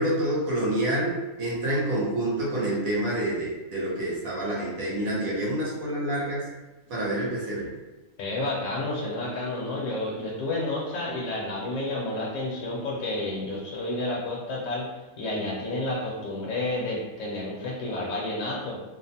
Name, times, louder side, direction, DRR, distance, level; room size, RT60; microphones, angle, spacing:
voice 1, 0.0-6.5 6.9-7.7, right 1 dB, 70° right, -6 dB, 1.3 m, -27 dB
voice 2, 8.2-14.9 15.2-18.8, left 2 dB, 65° left, -4 dB, 1.0 m, -30 dB
3.0 x 2.1 x 2.7 m, 1.1 s
omnidirectional pair, 1.5 m